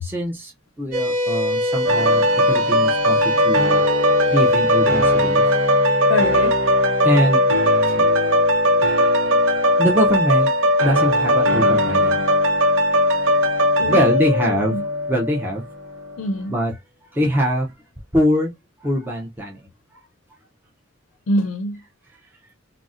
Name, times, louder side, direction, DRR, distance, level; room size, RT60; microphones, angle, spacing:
voice 1, 0.0-6.1 6.7-7.5 7.8-8.7 9.8-12.2 13.1-14.8 15.1-15.6 16.5-16.7 17.0-17.7 18.1-18.5 18.8-19.6 19.9-20.0 22.2-22.4, equal, 10° right, 0.5 m, -24 dB
sound 1, 0.9-13.6, left 1 dB, 45° right, 1.2 m, -27 dB
sound 2, 1.9-15.6 16.0-16.2, equal, 80° right, 0.8 m, -18 dB
voice 2, 6.1-6.5 13.8-14.8 16.2-16.5 21.3-21.8, left 2 dB, 90° left, 0.5 m, -24 dB
3.8 x 2.0 x 2.4 m
head